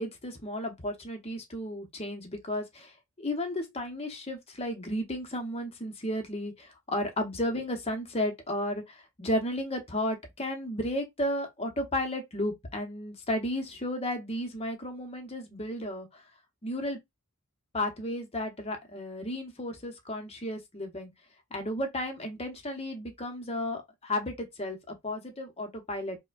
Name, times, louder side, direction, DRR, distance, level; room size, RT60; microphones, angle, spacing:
voice 1, 0.0-16.2 16.6-17.0 17.7-21.1 21.5-26.2, left 1 dB, 30° left, 0.9 m, -33 dB
4.8 x 2.2 x 2.5 m
head